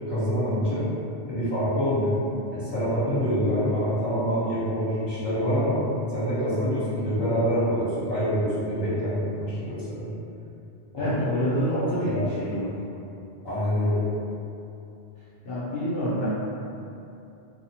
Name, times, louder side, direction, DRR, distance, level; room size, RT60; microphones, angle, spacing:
voice 1, 0.1-0.9 1.2-2.1 2.5-5.8 6.1-10.1 10.9-12.2 13.4-14.0, equal, 25° left, -12 dB, 1.0 m, -26 dB
voice 2, 11.0-12.6 15.4-16.3, equal, 65° left, -12 dB, 0.8 m, -27 dB
2.7 x 2.1 x 2.8 m, 2.7 s
omnidirectional pair, 1.1 m